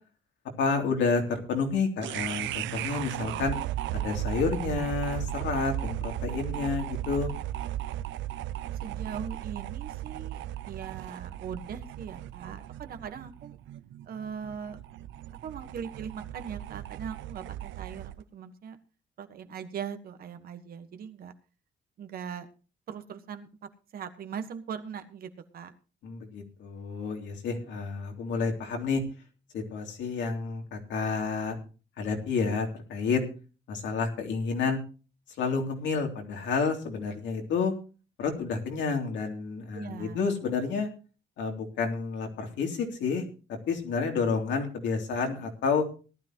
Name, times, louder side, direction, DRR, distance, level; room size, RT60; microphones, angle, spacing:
voice 1, 0.6-3.5 3.9-7.3 26.0-29.0 29.5-31.6 32.0-33.2 33.7-34.8 35.4-37.7 38.2-40.9 41.4-43.2 43.7-45.8, left 5 dB, 75° left, 2 dB, 3.3 m, -30 dB
sound 1, 2.0-18.2, right 13 dB, 90° right, 0.5 m, -36 dB
voice 2, 8.8-13.6 14.0-14.8 15.4-18.8 19.2-21.3 22.0-22.5 22.9-25.7 39.7-40.2, right 7 dB, 50° right, 8 dB, 1.5 m, -40 dB
18.5 x 12.5 x 3.1 m, 0.36 s
cardioid pair, 170°, 19 cm